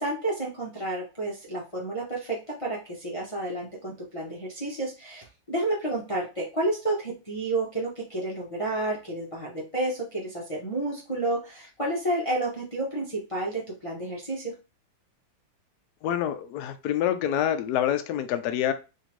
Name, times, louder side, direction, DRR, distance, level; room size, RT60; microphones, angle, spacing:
voice 1, 0.0-14.5, right 2 dB, 35° left, 0.5 m, -30 dB
voice 2, 16.0-18.7, left 10 dB, 75° left, 0.9 m, -26 dB
4.3 x 2.9 x 3.0 m
omnidirectional pair, 2.1 m